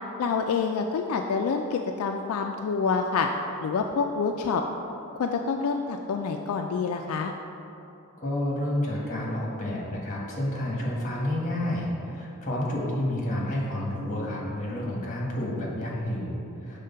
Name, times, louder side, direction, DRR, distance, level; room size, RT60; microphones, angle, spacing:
voice 1, 0.2-3.3 3.6-4.6 5.1-7.3, left 5 dB, 75° left, 4 dB, 0.3 m, -27 dB
voice 2, 8.2-16.8, left 1 dB, 35° left, -3 dB, 1.4 m, -30 dB
6.5 x 3.7 x 5.6 m, 2.9 s
head